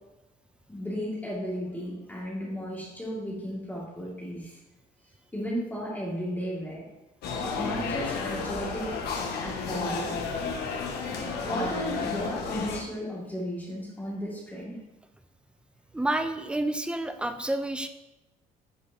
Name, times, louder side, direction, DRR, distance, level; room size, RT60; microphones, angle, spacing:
voice 1, 0.7-4.6 5.3-6.9 7.6-9.0 9.4-10.2 11.5-14.8, equal, 10° left, -6 dB, 2.2 m, -34 dB
sound 1, 7.2-12.8, left 4 dB, 70° left, 1.3 m, -32 dB
voice 2, 15.9-17.9, right 1 dB, 5° right, 8 dB, 0.5 m, -29 dB
11.0 x 4.9 x 2.8 m, 1.0 s
cardioid pair, 110°, 17 cm